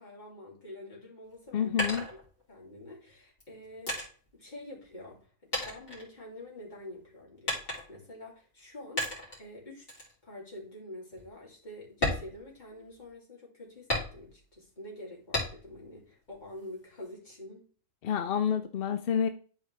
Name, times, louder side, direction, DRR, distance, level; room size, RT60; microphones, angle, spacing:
voice 1, 0.0-2.2 2.5-9.9 10.2-17.7, left 1 dB, 35° left, 3.1 m, -47 dB
sound 1, 1.2-2.8 3.4-5.2 5.5-6.7 7.5-8.1 9.0-9.5 9.9-10.1 10.6-10.7 11.1-11.3 11.9-13.1 13.9-14.5 15.3-15.9 16.3-17.1, left 1 dB, 80° left, 3.7 m, -35 dB
voice 2, 1.5-2.1 18.0-19.3, left 8 dB, 60° left, 0.6 m, -28 dB
12.0 x 4.8 x 3.3 m
omnidirectional pair, 1.4 m